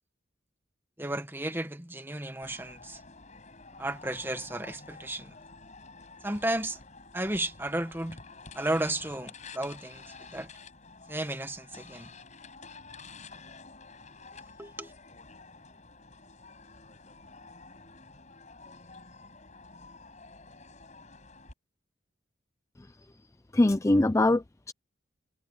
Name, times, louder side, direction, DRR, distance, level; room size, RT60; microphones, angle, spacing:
voice 1, 1.0-3.0 3.8-5.4 6.2-6.8 7.1-8.2 8.5-10.5 11.1-12.1 14.6-14.9, right 1 dB, 10° right, 1.6 m, -33 dB
sound 1, 2.4-21.5, left 4 dB, 40° left, 5.9 m, -50 dB
voice 2, 23.5-24.7, left 2 dB, 15° left, 0.4 m, -23 dB
head